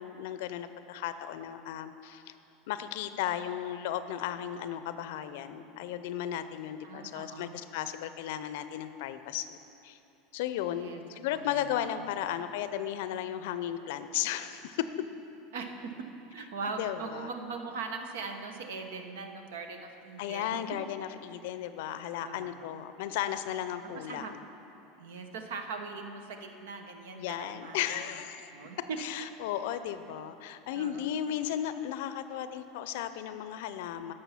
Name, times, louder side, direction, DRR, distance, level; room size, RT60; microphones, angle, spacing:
voice 1, 0.0-2.3 2.7-9.6 9.8-10.0 10.3-14.9 16.7-17.3 20.2-24.4 27.1-28.5 28.8-34.1, left 11 dB, 75° left, 11 dB, 0.5 m, -35 dB
voice 2, 6.8-7.5 10.7-11.0 11.3-11.5 15.5-15.9 16.3-20.6 22.2-22.8 23.9-24.3 25.0-28.1 28.5-28.8 30.7-31.1, right 4 dB, 80° right, 5 dB, 0.9 m, -41 dB
11.0 x 6.7 x 5.7 m, 2.9 s
hypercardioid pair, 95°, 0 cm